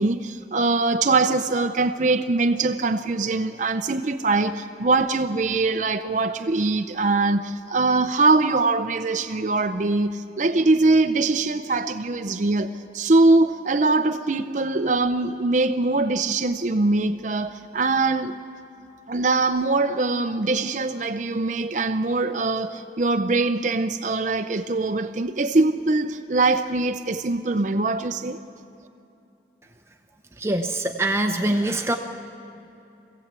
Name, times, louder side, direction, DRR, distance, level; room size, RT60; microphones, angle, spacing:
voice 1, 0.0-18.4 19.1-28.4, right 3 dB, 45° right, 0.6 m, -22 dB
voice 2, 30.4-32.0, right 1 dB, 15° right, 0.8 m, -23 dB
25.5 x 16.0 x 8.2 m
head